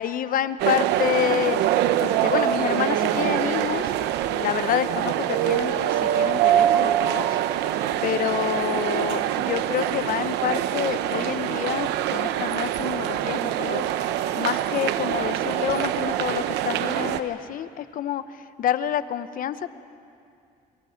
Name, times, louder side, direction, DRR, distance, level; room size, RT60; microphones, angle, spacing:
voice 1, 0.0-1.7 2.0-3.9 4.3-7.7 8.0-14.1 14.4-19.7, left 10 dB, 55° left, 13 dB, 0.8 m, -28 dB
sound 1, 0.6-17.2, right 11 dB, 90° right, 0.8 m, -24 dB
23.0 x 22.5 x 5.8 m, 2.4 s
cardioid pair, 110°, 17 cm